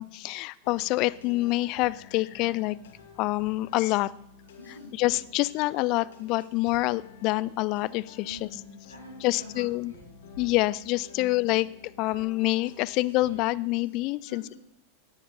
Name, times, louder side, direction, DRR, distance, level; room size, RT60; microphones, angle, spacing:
voice 1, 0.0-2.8 3.2-4.1 5.0-8.5 9.2-9.9 10.4-11.7 12.0-14.4, left 19 dB, 40° left, 21 dB, 0.4 m, -26 dB
sound 1, 0.6-13.4, left 6 dB, 60° left, 2.3 m, -51 dB
voice 2, 4.6-5.2 8.2-10.4 13.8-13.9 14.2-14.6, equal, 85° right, 0 dB, 3.9 m, -47 dB
18.0 x 9.9 x 4.3 m, 0.77 s
figure-of-eight pair, 90°, 0 cm